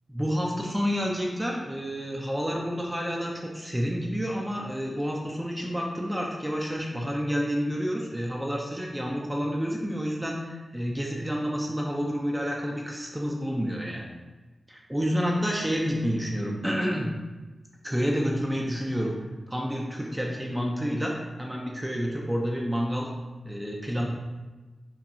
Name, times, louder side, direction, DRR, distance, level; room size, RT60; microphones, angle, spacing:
voice 1, 0.1-14.1 14.7-17.1 17.8-23.1 23.4-24.1, equal, 10° right, -1 dB, 0.4 m, -29 dB
5.6 x 2.3 x 2.6 m, 1.2 s
wide cardioid pair, 115°, 0 cm